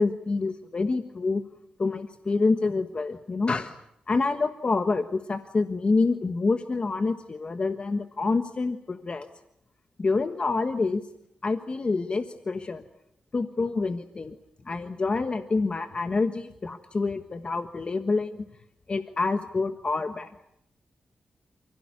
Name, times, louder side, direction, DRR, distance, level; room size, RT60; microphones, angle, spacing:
voice 1, 0.0-1.4 1.8-3.7 4.1-9.3 10.0-11.0 11.4-12.8 13.3-14.4 14.6-18.3 18.9-20.3, left 3 dB, 40° left, 8 dB, 1.4 m, -27 dB
29.0 x 16.5 x 9.8 m, 0.78 s
wide cardioid pair, 105°, 3 cm